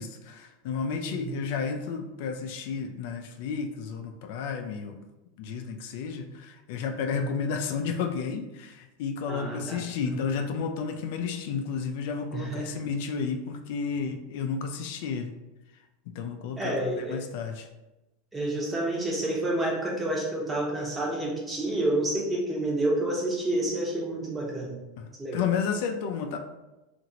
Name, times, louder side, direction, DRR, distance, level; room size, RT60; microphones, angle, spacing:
voice 1, 0.0-5.0 5.4-15.3 16.1-17.7 25.0-26.4, left 6 dB, 65° left, 5 dB, 0.3 m, -32 dB
voice 2, 9.3-10.3 12.3-12.8 16.6-17.2 18.3-24.8 25.2-25.4, right 1 dB, 15° right, -2 dB, 0.8 m, -29 dB
2.8 x 2.5 x 2.7 m, 1.0 s
supercardioid pair, 125°, 0 cm